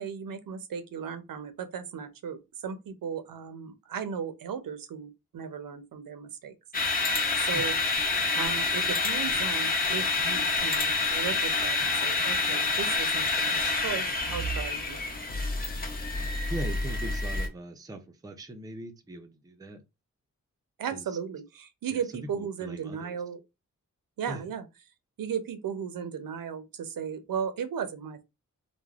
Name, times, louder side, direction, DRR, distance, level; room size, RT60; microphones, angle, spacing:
voice 1, 0.0-6.5 7.4-7.8 8.3-15.0 20.8-23.4 24.2-24.7 25.2-28.2, right 7 dB, 85° right, 0.6 m, -36 dB
sound 1, 6.7-17.5, left 3 dB, 30° left, 0.6 m, -28 dB
voice 2, 16.5-19.8 20.9-21.1 21.9-22.0 22.3-23.2 24.3-24.4, right 2 dB, 10° right, 0.3 m, -40 dB
3.2 x 2.1 x 2.3 m
wide cardioid pair, 135°, 33 cm